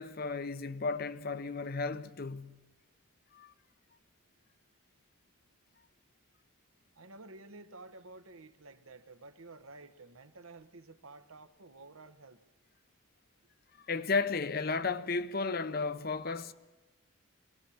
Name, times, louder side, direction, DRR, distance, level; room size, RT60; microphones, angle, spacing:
voice 1, 0.0-2.6 3.3-3.5 13.9-16.5, left 4 dB, 45° left, 0.8 m, -34 dB
voice 2, 7.0-12.4, right 3 dB, 75° right, 1.2 m, -52 dB
23.0 x 19.0 x 7.2 m
head